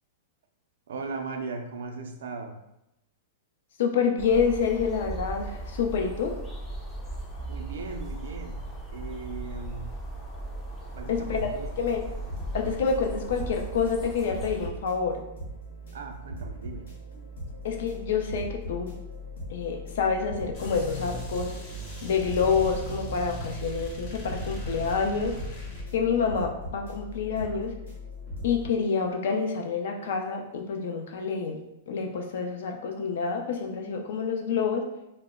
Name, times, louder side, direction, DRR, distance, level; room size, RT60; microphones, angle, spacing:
voice 1, 0.9-2.6 7.5-8.6 8.9-10.0 10.9-11.7 15.9-16.9, right 4 dB, 80° right, 5 dB, 0.4 m, -38 dB
voice 2, 3.8-6.4 11.1-11.4 11.8-12.0 12.5-15.2 17.6-18.9 19.5-21.5 22.0-25.4 25.9-27.7 28.4-31.6 31.9-34.9, left 5 dB, 70° left, 2 dB, 0.5 m, -27 dB
sound 1, 4.2-14.7, right 2 dB, 15° left, 0.4 m, -38 dB
sound 2, 11.2-28.7, left 1 dB, 90° left, 0.9 m, -40 dB
sound 3, 20.5-25.9, equal, 35° left, 0.8 m, -38 dB
2.0 x 2.0 x 3.5 m, 0.88 s
hypercardioid pair, 135°, 0 cm